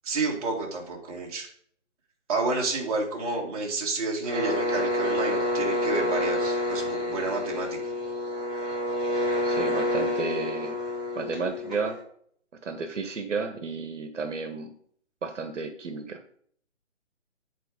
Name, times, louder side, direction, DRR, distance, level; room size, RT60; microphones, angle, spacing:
voice 1, 0.0-1.5 2.3-7.9, right 3 dB, 30° right, -1 dB, 1.7 m, -30 dB
sound 1, 4.2-12.0, left 1 dB, ahead, 2.8 m, -28 dB
voice 2, 9.4-10.8 11.1-12.0 12.6-14.7 15.2-16.2, right 4 dB, 75° right, 8 dB, 1.1 m, -32 dB
7.8 x 4.3 x 4.9 m, 0.62 s
hypercardioid pair, 160°, 37 cm